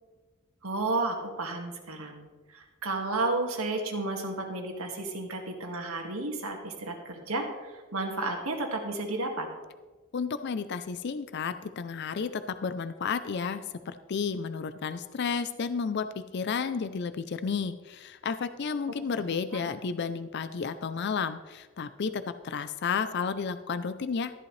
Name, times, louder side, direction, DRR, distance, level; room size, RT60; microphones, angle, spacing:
voice 1, 0.6-9.5 19.5-19.7, right 2 dB, 90° right, 2 dB, 1.9 m, -32 dB
voice 2, 10.1-24.3, left 5 dB, 55° left, 11 dB, 0.4 m, -32 dB
13.5 x 11.0 x 3.2 m, 1.3 s
head